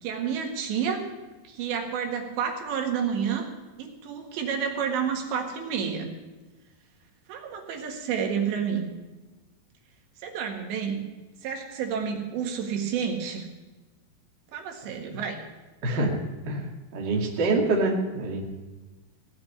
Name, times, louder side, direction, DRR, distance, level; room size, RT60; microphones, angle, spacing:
voice 1, 0.0-1.0 1.5-3.5 3.8-6.1 7.3-8.9 10.2-11.0 11.4-13.5 14.5-15.4, right 7 dB, 85° right, 3 dB, 3.9 m, -30 dB
voice 2, 15.8-16.2 16.4-18.4, right 2 dB, 35° right, -1 dB, 2.1 m, -26 dB
17.5 x 6.1 x 10.0 m, 1.2 s
omnidirectional pair, 4.9 m